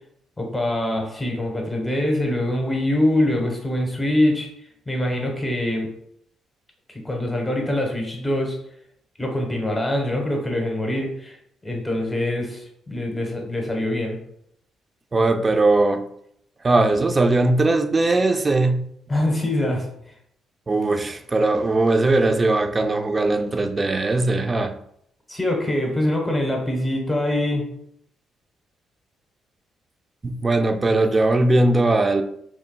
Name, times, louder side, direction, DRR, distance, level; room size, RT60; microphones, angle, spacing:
voice 1, 0.4-4.5 4.9-5.9 7.0-8.5 9.2-11.4 11.6-14.2 19.1-19.8 25.3-27.6, left 1 dB, 10° left, 1.0 m, -24 dB
voice 2, 15.1-16.0 16.6-18.9 20.7-24.8 30.2-32.2, right 2 dB, 25° right, 0.4 m, -19 dB
4.4 x 3.0 x 2.2 m
cardioid pair, 90°, 0 cm